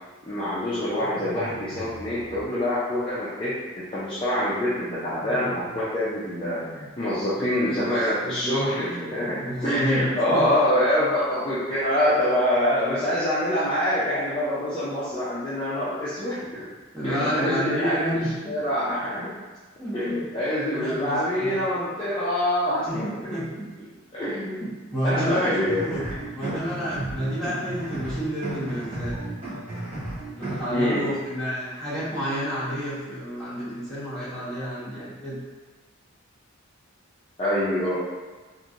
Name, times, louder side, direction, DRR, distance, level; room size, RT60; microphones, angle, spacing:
voice 1, 0.3-3.5 3.9-6.6 7.0-9.4 9.6-16.7 17.0-18.0 18.4-19.3 19.9-23.1 24.1-24.7 25.0-26.6 30.7-31.0 37.4-38.0, left 1 dB, 25° left, -11 dB, 0.5 m, -25 dB
sound 1, 1.0-2.4 4.7-5.8 6.2-6.9 8.6-9.8, right 2 dB, 60° right, 0.5 m, -41 dB
voice 2, 7.4-8.5 9.4-10.0 10.3-10.4 16.9-18.5 19.8-20.2 20.7-21.6 22.9-23.9 24.6-26.0 26.3-29.2 30.3-35.4, equal, 5° left, -13 dB, 1.3 m, -30 dB
sound 2, 25.6-30.6, right 2 dB, 30° right, 0.9 m, -33 dB
3.1 x 2.6 x 2.5 m, 1.3 s
head